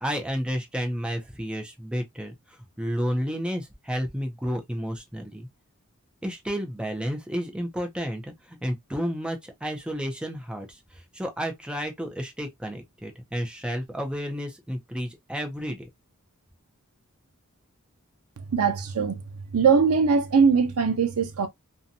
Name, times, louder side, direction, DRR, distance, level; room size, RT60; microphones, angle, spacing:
voice 1, 0.0-2.3 2.8-5.5 6.2-15.9, equal, 5° right, 0.5 m, -31 dB
voice 2, 18.5-19.2 19.5-21.5, right 5 dB, 85° right, 0.6 m, -21 dB
2.7 x 2.2 x 2.5 m
head